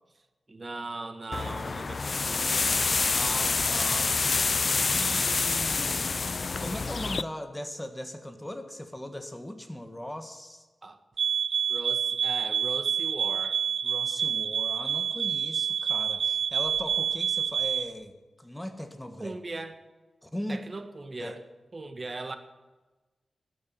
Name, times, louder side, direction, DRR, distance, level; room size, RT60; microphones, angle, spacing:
voice 1, 0.5-2.7 10.8-11.0 11.7-13.6 19.2-19.8 20.5-21.4 21.7-22.4, right 2 dB, 40° right, 8 dB, 1.5 m, -39 dB
sound 1, 1.3-7.2, left 4 dB, 55° left, 0.5 m, -27 dB
voice 2, 3.1-4.2 4.5-6.1 6.6-10.7 13.8-18.1 18.4-19.4 20.2-20.7 21.2-21.3, left 1 dB, 10° left, 7 dB, 1.6 m, -39 dB
sound 2, 11.2-17.9, right 8 dB, 85° right, 0.4 m, -28 dB
12.0 x 8.9 x 8.9 m, 1.2 s
cardioid pair, 60°, 0 cm